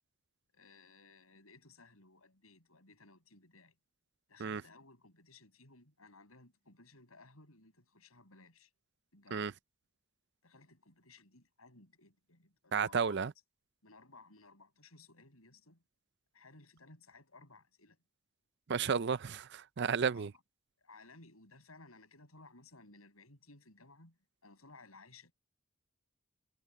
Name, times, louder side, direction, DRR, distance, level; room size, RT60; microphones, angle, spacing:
voice 1, 0.5-3.7 4.3-8.7 9.1-9.5 10.4-13.2 13.8-15.8 16.3-18.0 20.1-20.4 20.8-25.3, left 3 dB, 85° left, 6.9 m, -59 dB
voice 2, 12.7-13.3 18.7-20.3, right 6 dB, 55° right, 0.5 m, -32 dB
head